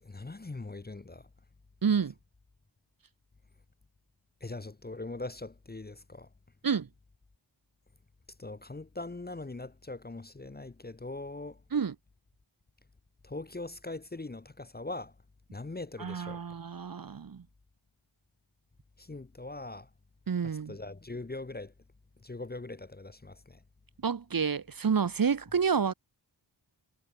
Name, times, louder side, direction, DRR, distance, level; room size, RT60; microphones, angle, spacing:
voice 1, 0.0-1.3 4.4-6.3 8.4-11.6 13.2-15.1 15.5-16.4 19.0-19.9 20.4-21.7 22.2-23.6, left 2 dB, 20° left, 0.8 m, -41 dB
voice 2, 1.8-2.1 6.6-6.9 11.7-11.9 16.0-17.4 20.3-20.7 24.0-25.9, right 6 dB, 45° right, 0.9 m, -29 dB
wide cardioid pair, 90°, 47 cm